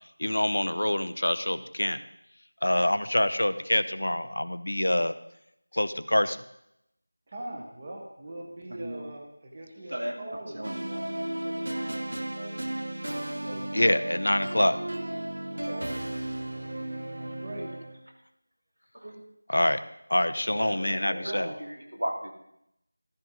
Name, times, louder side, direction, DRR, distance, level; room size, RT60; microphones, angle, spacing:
voice 1, 0.2-2.0 2.6-5.1 5.7-6.4 13.7-14.7 19.5-19.8 20.1-21.5, left 1 dB, 80° left, 12 dB, 0.8 m, -25 dB
voice 2, 7.3-12.5 13.4-13.7 14.4-14.7 15.5-15.9 17.1-17.7 20.5-21.6, right 1 dB, 15° right, 0 dB, 1.2 m, -42 dB
voice 3, 8.7-9.0 9.9-10.7 18.9-19.2 19.5-19.7 20.9-22.3, equal, 85° right, 3 dB, 2.5 m, -36 dB
sound 1, 10.6-18.0, right 1 dB, 65° right, 1.0 m, -34 dB
13.5 x 12.0 x 3.9 m, 0.79 s
figure-of-eight pair, 180°, 0 cm